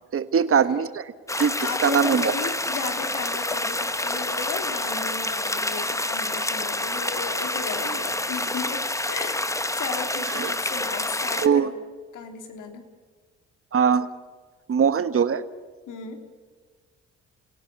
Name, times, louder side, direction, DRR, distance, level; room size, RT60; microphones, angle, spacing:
voice 1, 0.1-1.1 1.4-1.5 1.8-2.3 10.4-10.5 11.4-11.7 13.7-14.1 14.7-15.4, right 7 dB, 45° right, 13 dB, 1.3 m, -21 dB
sound 1, 1.3-11.5, left 1 dB, 10° left, 1.2 m, -28 dB
voice 2, 1.6-9.5 9.8-11.7 12.1-12.8 15.9-16.2, left 6 dB, 70° left, 5 dB, 3.2 m, -35 dB
28.0 x 17.5 x 8.2 m, 1.5 s
hypercardioid pair, 50°, 32 cm